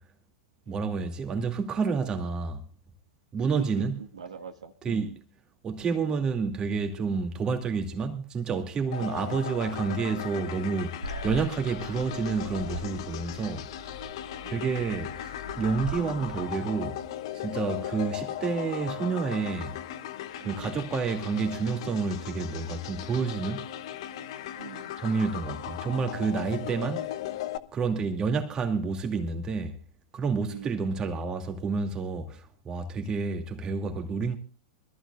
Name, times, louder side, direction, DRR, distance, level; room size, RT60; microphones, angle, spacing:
voice 1, 0.7-2.6 3.3-4.0 4.8-5.1 5.6-11.0 11.2-13.7 14.5-17.0 17.3-19.8 20.4-23.7 25.0-27.1 27.7-29.8 30.1-34.4, right 5 dB, 25° right, 2.4 m, -29 dB
voice 2, 4.0-5.2 9.0-9.1 14.4-14.8 16.0-16.3 17.7-17.9 20.4-20.8 24.6-25.0 30.5-30.9, right 6 dB, 70° right, 1.5 m, -43 dB
sound 1, 8.9-27.6, left 11 dB, 55° left, 1.0 m, -37 dB
sound 2, 11.0-16.4, left 1 dB, 90° left, 1.6 m, -41 dB
25.0 x 14.5 x 2.4 m
figure-of-eight pair, 100°, 3 cm